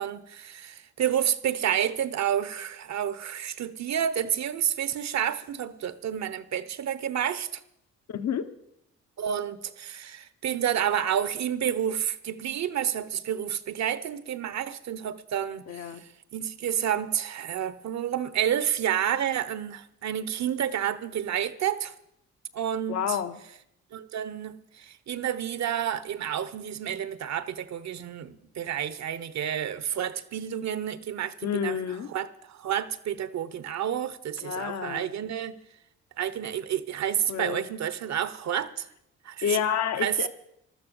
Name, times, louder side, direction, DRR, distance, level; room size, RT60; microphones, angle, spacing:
voice 1, 0.0-7.6 9.2-21.9 22.5-23.2 23.9-31.8 32.1-35.6 36.2-38.9 39.2-39.6 40.0-40.2, right 9 dB, 65° right, 1.1 m, -30 dB
voice 2, 8.1-8.5 15.7-16.0 22.9-23.4 31.4-32.1 34.4-35.2 37.3-37.6 39.4-40.3, left 8 dB, 60° left, 1.2 m, -29 dB
14.5 x 12.5 x 7.1 m
cardioid pair, 90°, 30 cm